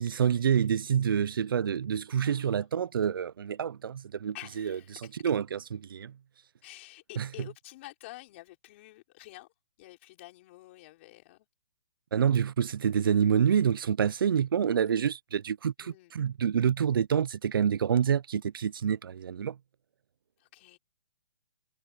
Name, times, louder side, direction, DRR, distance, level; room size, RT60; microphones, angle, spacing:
voice 1, 0.0-6.1 7.2-7.5 12.1-19.6, right 8 dB, 85° right, 0.5 m, -27 dB
voice 2, 2.2-2.7 4.3-5.0 6.6-9.5 9.8-11.5 15.0-15.2 15.8-16.1 20.4-20.8, left 19 dB, 35° left, 5.1 m, -49 dB
hypercardioid pair, 160°, 11 cm